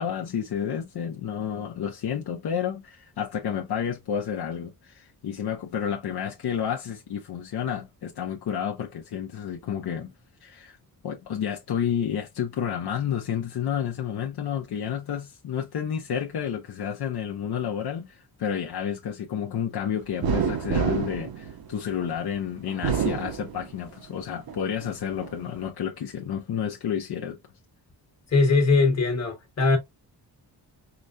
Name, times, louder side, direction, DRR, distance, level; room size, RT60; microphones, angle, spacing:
voice 1, 0.0-10.1 10.4-10.8 11.0-27.4, left 8 dB, 70° left, 0.7 m, -30 dB
sound 1, 20.2-22.1 22.7-24.0 24.5-25.4, right 7 dB, 65° right, 0.8 m, -28 dB
voice 2, 28.3-29.8, left 3 dB, 40° left, 1.4 m, -21 dB
5.0 x 2.2 x 2.5 m
wide cardioid pair, 160°, 40 cm